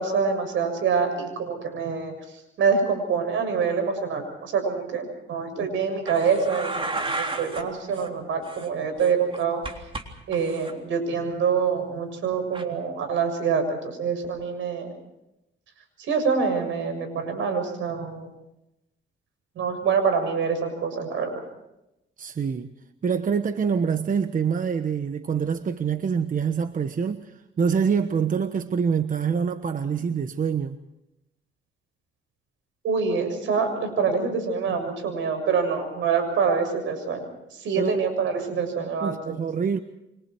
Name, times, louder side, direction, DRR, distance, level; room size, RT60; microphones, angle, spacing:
voice 1, 0.0-9.6 10.3-14.9 16.0-18.3 19.6-21.4 32.8-37.3 37.5-39.4, right 5 dB, 75° right, 7.1 m, -26 dB
sound 1, 6.1-7.6 7.9-8.1 8.4-10.0 10.3-10.7 12.5-12.6, right 3 dB, 25° right, 3.6 m, -33 dB
voice 2, 22.2-22.7 23.0-30.8 37.8-38.0 39.0-39.8, right 6 dB, 40° right, 1.2 m, -25 dB
29.0 x 25.0 x 4.6 m
cardioid pair, 90°, 20 cm